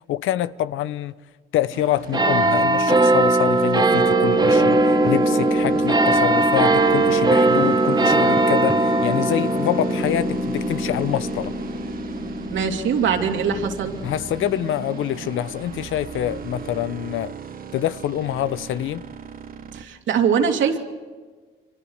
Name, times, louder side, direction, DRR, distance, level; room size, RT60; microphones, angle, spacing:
voice 1, 0.1-1.1 1.5-11.5 14.0-17.3 17.7-19.0, left 12 dB, 80° left, 0.8 m, -26 dB
sound 1, 1.7-19.9, right 7 dB, 45° right, 1.4 m, -37 dB
sound 2, 2.1-15.0 15.7-15.8, right 2 dB, 20° right, 2.5 m, -20 dB
sound 3, 4.4-5.2 5.4-5.8 6.1-8.8, right 1 dB, 5° right, 1.9 m, -34 dB
voice 2, 12.5-13.9 19.7-20.8, right 7 dB, 70° right, 2.9 m, -22 dB
28.5 x 25.5 x 6.6 m
cardioid pair, 90°, 20 cm